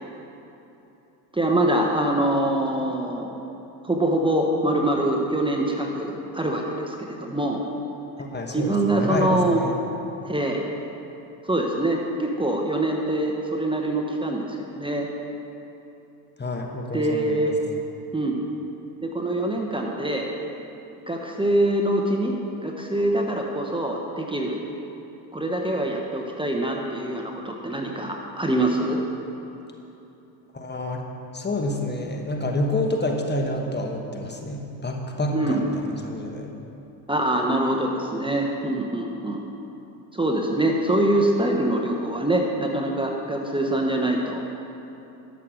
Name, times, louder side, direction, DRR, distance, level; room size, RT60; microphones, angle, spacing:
voice 1, 1.3-3.3 3.8-7.6 8.5-9.6 10.3-10.6 11.4-15.1 16.9-17.5 18.1-18.4 19.0-20.3 21.1-22.4 22.6-24.6 25.3-29.0 35.3-36.0 37.1-39.4 40.1-44.4, right 1 dB, 10° right, 0 dB, 1.2 m, -24 dB
voice 2, 8.2-9.8 16.4-17.5 30.5-31.0 31.3-35.7 36.0-36.5, left 1 dB, 20° left, 2 dB, 1.3 m, -28 dB
12.5 x 6.8 x 6.4 m, 3.0 s
supercardioid pair, 85°, 48 cm